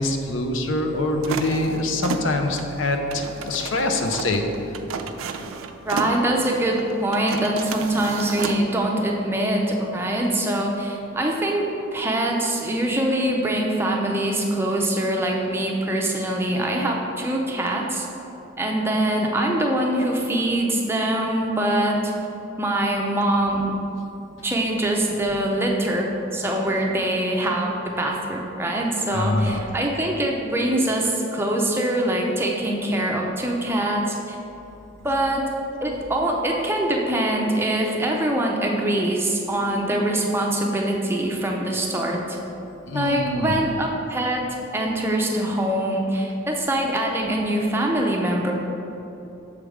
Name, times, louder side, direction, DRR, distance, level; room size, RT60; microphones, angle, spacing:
voice 1, 0.0-4.4 29.1-29.6 42.9-43.6, left 2 dB, 70° left, 4 dB, 0.6 m, -24 dB
sound 1, 1.2-8.6, right 5 dB, 80° right, 0.4 m, -33 dB
voice 2, 5.9-11.7 11.9-18.1 18.6-22.1 22.6-23.8 24.4-34.4 35.0-35.5 35.8-42.4 42.9-44.5 44.7-48.5, right 1 dB, 10° right, 0 dB, 0.5 m, -23 dB
7.0 x 3.3 x 4.8 m, 3.0 s
head